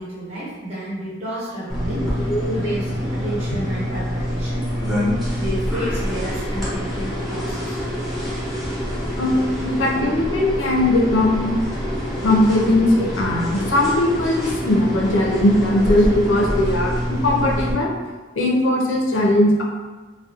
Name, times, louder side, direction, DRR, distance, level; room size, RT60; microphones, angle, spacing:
voice 1, 0.0-2.1 2.6-4.7 5.3-7.8 9.7-9.8, right 1 dB, 35° right, -9 dB, 0.7 m, -31 dB
sound 1, 1.7-17.7, equal, ahead, 0.6 m, -26 dB
voice 2, 2.0-2.6 9.2-11.5 12.2-17.9 18.4-19.6, left 1 dB, 75° left, 0 dB, 0.4 m, -19 dB
2.3 x 2.1 x 2.7 m, 1.3 s
head